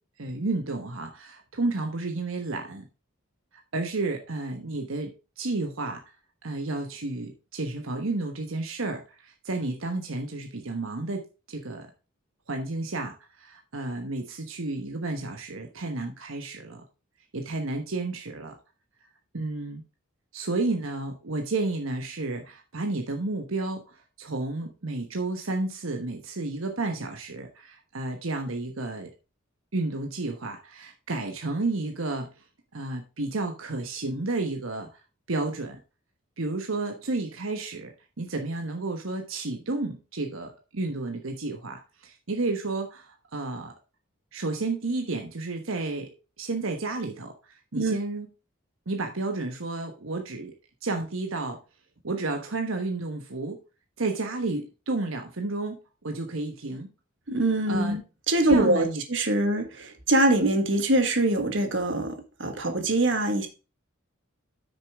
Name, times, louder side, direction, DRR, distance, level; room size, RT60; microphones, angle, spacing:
voice 1, 0.2-2.8 3.7-6.0 6.4-11.9 12.5-16.8 17.3-18.5 19.3-19.8 20.3-29.1 29.7-32.4 32.7-34.9 35.3-35.8 36.4-43.7 44.3-46.1 46.4-48.3 48.9-50.5 50.8-51.6 52.0-53.6 54.0-55.8 56.0-56.9 57.7-58.0 58.4-59.0, right 2 dB, 80° right, 1.2 m, -31 dB
voice 2, 57.3-58.0 58.3-63.5, right 1 dB, 60° right, 1.7 m, -23 dB
8.3 x 6.7 x 3.6 m
head